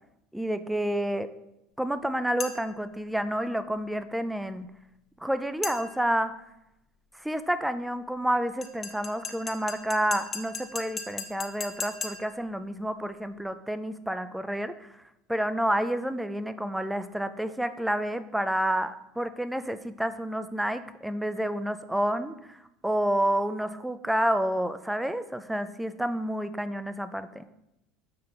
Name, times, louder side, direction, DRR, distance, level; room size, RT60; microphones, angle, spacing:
voice 1, 0.3-1.3 1.8-4.7 5.2-6.3 7.2-14.9 15.3-27.4, right 1 dB, 5° right, 11 dB, 0.5 m, -29 dB
sound 1, 2.4-2.8 5.6-6.1 8.6-12.4, left 5 dB, 30° left, 0.9 m, -38 dB
8.6 x 4.1 x 4.5 m, 0.85 s
supercardioid pair, 110°, 0 cm